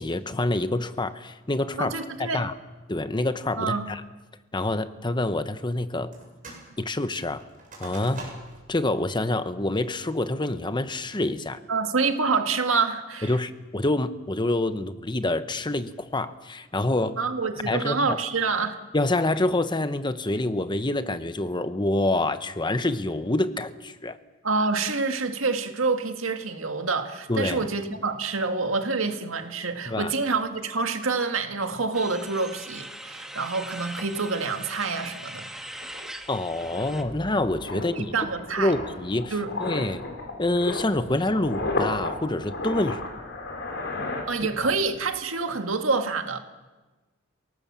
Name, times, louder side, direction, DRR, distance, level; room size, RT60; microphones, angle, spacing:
voice 1, 0.0-2.5 2.9-4.0 4.5-6.1 6.8-7.4 7.8-8.3 8.7-11.6 13.2-17.2 17.6-18.2 18.9-24.2 27.3-27.7 29.9-30.1 36.3-38.1 38.6-39.3 39.6-40.0 40.4-43.0 44.6-44.7, left 2 dB, 25° left, 1.0 m, -27 dB
voice 2, 1.8-2.5 3.6-3.9 11.7-13.3 17.2-18.8 24.4-35.5 37.7-38.7 39.3-39.5 44.3-46.4, right 4 dB, 85° right, 1.9 m, -27 dB
sound 1, 6.1-6.7 7.0-8.7 9.1-9.2 9.7-10.1 10.6-11.0, right 2 dB, 45° right, 7.5 m, -44 dB
sound 2, 31.9-37.0, right 1 dB, 5° right, 1.6 m, -40 dB
sound 3, 35.4-35.5 35.8-44.9 45.1-45.4, left 2 dB, 60° left, 5.2 m, -34 dB
29.5 x 18.5 x 7.5 m
head